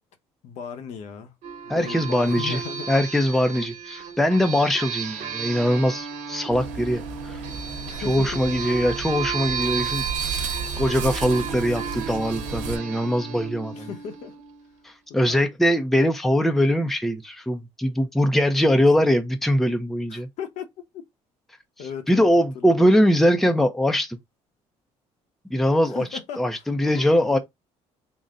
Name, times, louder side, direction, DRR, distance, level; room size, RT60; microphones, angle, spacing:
voice 1, 0.4-1.4 1.6-2.9 7.9-8.4 13.7-14.4 15.1-15.5 18.6-19.1 20.1-21.0 21.8-22.9 25.9-27.4, left 7 dB, 70° left, 0.9 m, -37 dB
sound 1, 1.4-14.6, right 6 dB, 70° right, 1.1 m, -33 dB
voice 2, 1.7-2.6 2.9-7.4 8.1-10.5 10.8-13.9 14.8-20.3 22.1-24.2 25.5-26.1 26.4-27.4, equal, ahead, 0.5 m, -22 dB
sound 2, 6.5-12.8, right 5 dB, 90° right, 1.0 m, -34 dB
3.9 x 2.1 x 3.6 m
cardioid pair, 130°, 12 cm